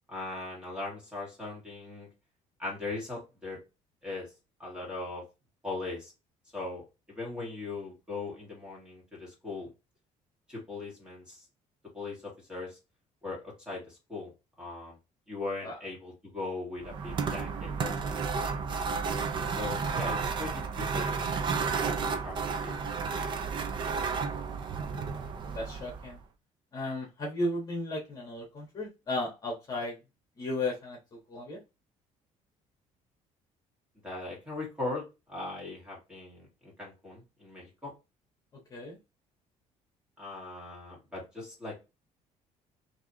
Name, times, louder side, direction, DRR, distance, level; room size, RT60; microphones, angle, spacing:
voice 1, 0.1-2.1 2.6-3.6 4.0-4.3 4.6-5.2 5.6-6.1 6.5-9.7 10.5-11.4 11.9-12.8 13.2-14.3 14.6-15.0 15.3-18.6 19.5-21.2 21.6-22.4 22.6-22.8 34.0-35.0 35.3-37.9 40.2-41.7, left 3 dB, 5° right, -4 dB, 1.9 m, -39 dB
sound 1, 16.8-26.2, right 5 dB, 35° right, 0.4 m, -32 dB
voice 2, 25.4-26.2 26.7-30.0 30.4-31.0 31.3-31.6 38.7-39.0, left 2 dB, 30° left, -2 dB, 1.4 m, -34 dB
4.6 x 3.0 x 2.9 m, 0.27 s
cardioid pair, 160°, 13 cm